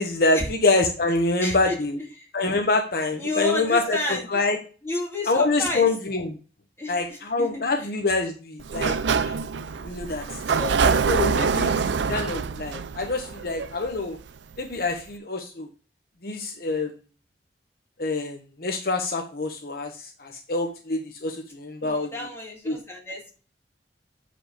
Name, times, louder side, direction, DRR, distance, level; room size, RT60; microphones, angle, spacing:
voice 1, 0.0-2.0 2.3-4.6 5.3-6.4 6.9-9.4 9.8-10.2 10.8-14.2 14.6-15.7 16.2-16.9 18.0-19.9 20.2-22.1 22.7-22.8, left 3 dB, 55° left, 4 dB, 1.0 m, -26 dB
voice 2, 1.4-1.7 2.2-2.3 3.2-4.3 4.8-5.9 6.8-7.5 7.8-7.9 10.5-10.8 21.8-23.3, left 2 dB, 15° left, -1 dB, 2.5 m, -31 dB
Sliding door, 8.6-14.3, right 5 dB, 80° right, 0.5 m, -25 dB
7.4 x 5.2 x 5.0 m, 0.36 s
head